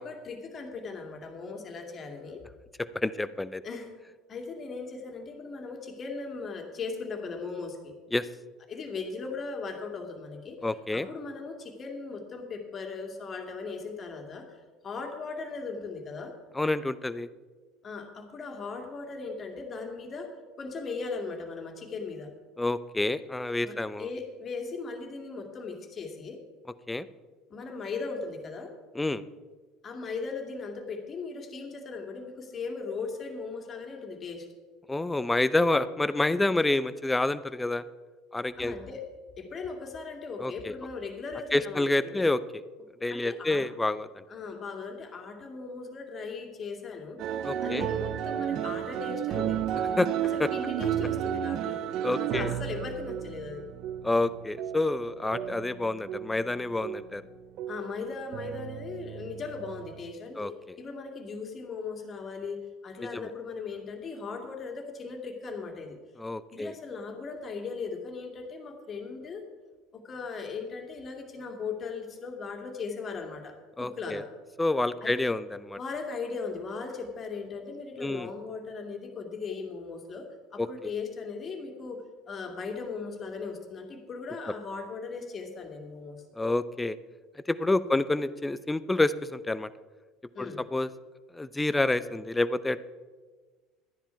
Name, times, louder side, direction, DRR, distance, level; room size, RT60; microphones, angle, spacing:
voice 1, 0.0-2.4 3.6-3.9 4.3-7.9 8.7-10.6 10.9-14.6 14.8-16.3 17.8-20.3 20.6-22.3 23.6-26.4 27.5-28.7 29.8-34.5 38.6-39.0 39.4-42.3 43.1-43.6 44.3-47.2 47.6-49.6 50.3-51.8 52.1-53.6 57.7-66.0 66.5-69.4 69.9-73.5 73.8-74.3 75.0-75.2 75.8-86.2 87.7-88.0 90.3-90.6, left 4 dB, 40° left, 3 dB, 2.4 m, -38 dB
voice 2, 2.9-3.6 8.1-8.3 10.6-11.1 16.5-17.3 22.6-24.1 26.9-27.1 28.9-29.2 34.9-37.8 38.3-38.7 40.4-40.7 41.5-42.4 43.0-44.2 47.4-47.8 50.0-50.1 50.4-50.5 52.0-52.5 54.0-57.2 60.4-60.8 63.0-63.3 66.2-66.8 73.8-74.2 74.6-75.8 78.0-78.3 80.6-80.9 86.4-87.0 87.5-89.7 90.4-90.9 91.3-92.8, left 2 dB, 10° left, 15 dB, 0.6 m, -28 dB
sound 1, 47.2-57.3 57.6-58.0 58.3-60.1, right 10 dB, 60° right, 0.6 m, -33 dB
12.5 x 10.0 x 4.6 m, 1.4 s
hypercardioid pair, 75°, 0 cm